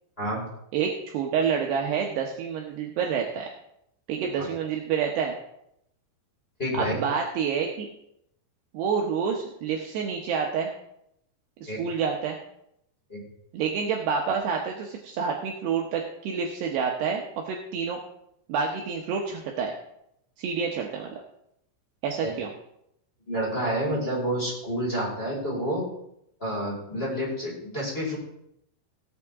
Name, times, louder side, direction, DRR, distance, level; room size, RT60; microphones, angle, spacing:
voice 1, 0.7-3.5 4.1-5.3 6.8-7.9 8.7-10.7 11.6-12.4 13.5-18.0 18.5-19.7 20.4-21.2 22.0-22.5, right 6 dB, 70° right, 1 dB, 2.8 m, -28 dB
voice 2, 6.6-7.0 11.6-11.8 13.1-13.2 22.2-22.3 23.3-25.8 26.4-28.2, equal, 10° left, -7 dB, 4.8 m, -29 dB
17.0 x 8.7 x 3.6 m, 0.76 s
omnidirectional pair, 5.5 m